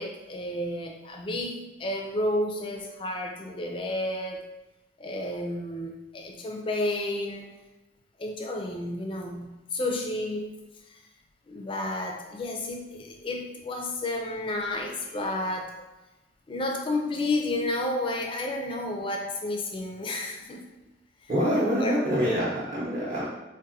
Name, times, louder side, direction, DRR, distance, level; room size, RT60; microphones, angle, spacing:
voice 1, 0.0-4.4 5.0-7.5 8.2-10.5 10.9-11.0 11.5-15.7 16.5-20.6 21.8-22.0, left 1 dB, 25° left, 3 dB, 0.3 m, -31 dB
voice 2, 21.3-23.2, equal, 45° right, -9 dB, 0.6 m, -25 dB
3.9 x 2.1 x 2.6 m, 1.1 s
head